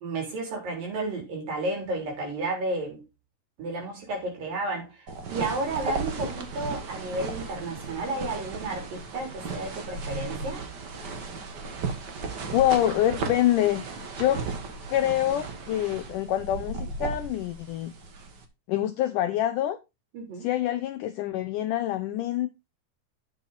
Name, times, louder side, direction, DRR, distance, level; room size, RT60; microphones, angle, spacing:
voice 1, 0.0-3.0 3.6-10.6 20.1-20.5, right 2 dB, 65° right, 5.3 m, -32 dB
sound 1, 5.1-18.4, right 4 dB, 80° right, 0.9 m, -35 dB
voice 2, 12.5-13.8 14.2-14.4 14.9-17.9 18.7-19.8 20.4-22.5, left 13 dB, 80° left, 1.9 m, -26 dB
9.2 x 8.8 x 4.1 m
omnidirectional pair, 4.4 m